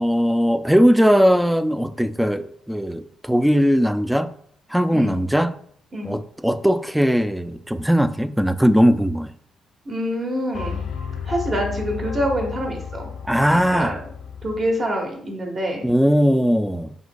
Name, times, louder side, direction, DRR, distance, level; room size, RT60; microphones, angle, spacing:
voice 1, 0.0-4.3 4.7-5.6 6.0-9.3 13.2-14.0 15.8-16.9, equal, 5° right, 0.3 m, -19 dB
voice 2, 9.8-10.8 11.2-13.1 13.5-14.0 14.4-15.8, equal, 45° right, 1.3 m, -26 dB
sound 1, 10.5-14.8, left 6 dB, 75° left, 0.5 m, -32 dB
4.9 x 3.7 x 2.3 m
supercardioid pair, 65°, 0 cm